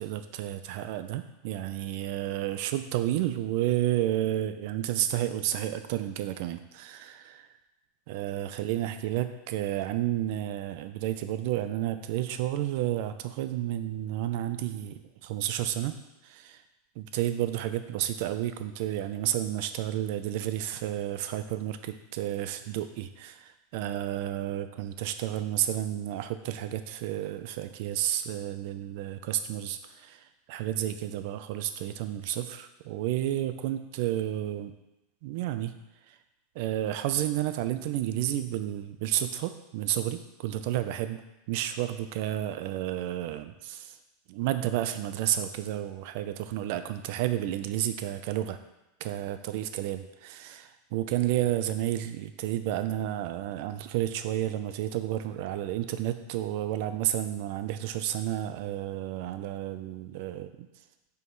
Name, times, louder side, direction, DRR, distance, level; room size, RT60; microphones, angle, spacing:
voice 1, 0.0-7.5 8.1-16.0 16.2-16.6 17.0-34.7 35.2-35.7 36.1-36.2 36.5-41.2 41.5-44.0 44.3-48.6 49.0-60.7, right 13 dB, 55° right, 10 dB, 0.5 m, -31 dB
5.7 x 4.7 x 4.0 m, 0.96 s
supercardioid pair, 150°, 0 cm